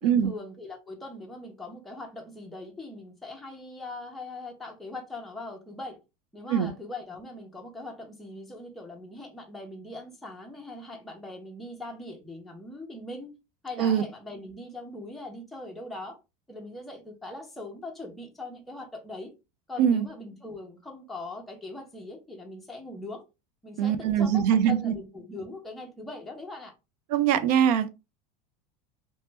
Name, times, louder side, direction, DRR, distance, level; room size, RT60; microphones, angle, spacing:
voice 1, 0.0-6.0 6.3-13.3 13.6-16.2 16.5-19.3 19.7-23.2 23.6-26.7, left 2 dB, ahead, 0.5 m, -41 dB
voice 2, 23.8-24.9 27.1-27.9, right 9 dB, 70° right, 0.5 m, -22 dB
2.9 x 2.1 x 3.2 m
supercardioid pair, 150°, 21 cm